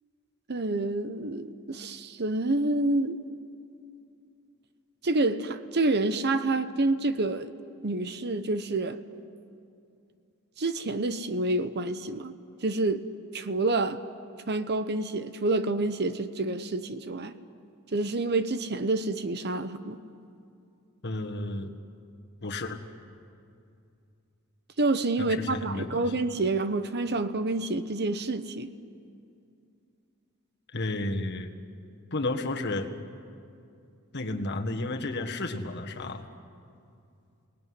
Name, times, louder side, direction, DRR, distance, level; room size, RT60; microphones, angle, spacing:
voice 1, 0.5-3.2 5.0-7.5 7.8-9.0 10.6-12.3 12.6-13.0 13.3-14.0 14.5-17.3 17.9-20.0 24.8-28.7, right 2 dB, 50° right, 1.0 m, -28 dB
voice 2, 21.0-21.7 22.4-22.8 25.2-26.1 30.7-31.5 32.1-32.9 34.1-36.3, left 2 dB, 55° left, 1.7 m, -32 dB
29.5 x 19.5 x 9.7 m
head